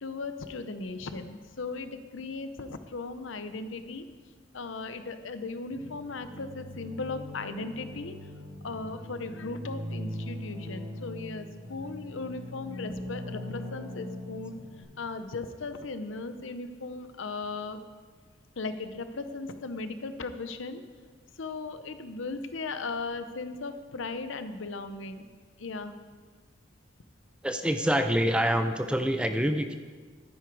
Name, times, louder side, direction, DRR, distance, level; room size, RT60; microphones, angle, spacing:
voice 1, 0.0-4.1 4.5-8.1 8.6-14.6 15.0-17.8 18.6-20.8 21.4-25.3 25.6-26.0, left 3 dB, 80° left, 10 dB, 0.8 m, -37 dB
sound 1, 5.7-14.8, left 1 dB, 35° right, 3.1 m, -40 dB
voice 2, 27.4-29.8, equal, 5° right, 7 dB, 0.5 m, -26 dB
11.0 x 10.0 x 4.7 m, 1.5 s
head